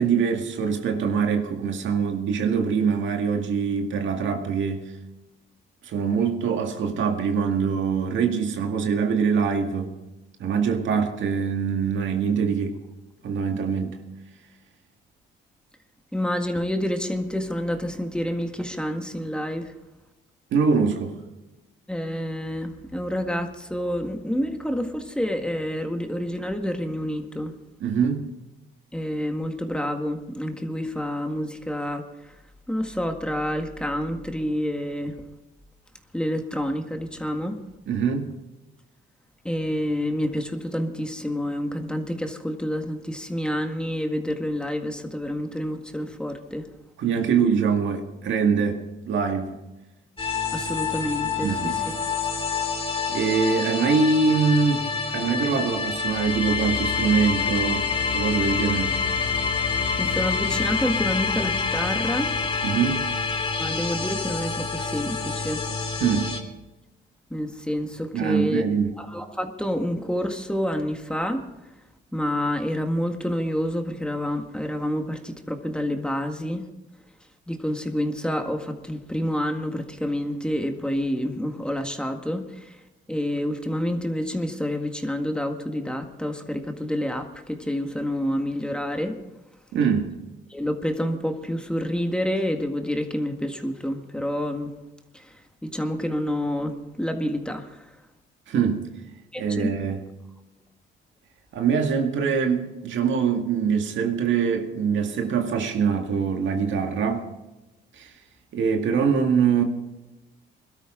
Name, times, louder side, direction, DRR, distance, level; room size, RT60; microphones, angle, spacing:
voice 1, 0.0-4.9 5.8-10.0 10.4-12.8 13.2-14.0 20.5-21.2 27.8-28.2 37.9-38.3 47.0-49.6 51.4-51.8 53.1-57.9 58.1-59.0 62.6-63.0 66.0-66.3 68.1-68.9 89.7-90.1 98.5-98.9 99.4-100.0 101.5-107.3 108.0-108.1 108.5-109.6, right 6 dB, 70° right, 2.0 m, -23 dB
voice 2, 16.1-19.7 21.9-27.5 28.9-32.1 32.7-35.2 36.1-37.6 39.4-46.7 50.5-51.8 60.0-62.4 63.6-65.6 67.3-68.6 69.0-71.4 72.1-76.7 77.5-82.8 83.1-89.2 90.5-94.7 95.1-95.4 95.6-97.9 99.3-99.7, equal, 5° left, 1.8 m, -28 dB
sound 1, 50.2-66.4, left 5 dB, 25° left, 2.6 m, -27 dB
21.5 x 13.0 x 3.8 m
cardioid pair, 90°, 20 cm